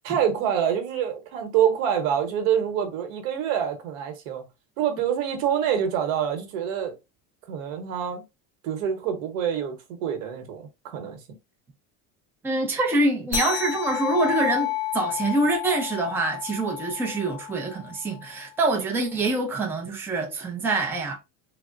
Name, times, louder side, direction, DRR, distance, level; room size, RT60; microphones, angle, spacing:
voice 1, 0.0-4.4 4.8-6.9 7.5-8.2 8.6-11.2, right 9 dB, 90° right, 1.0 m, -26 dB
voice 2, 12.4-21.2, right 2 dB, 5° right, 0.4 m, -25 dB
sound 1, 13.3-18.2, left 13 dB, 60° left, 1.1 m, -31 dB
3.4 x 2.0 x 2.4 m
cardioid pair, 145°, 39 cm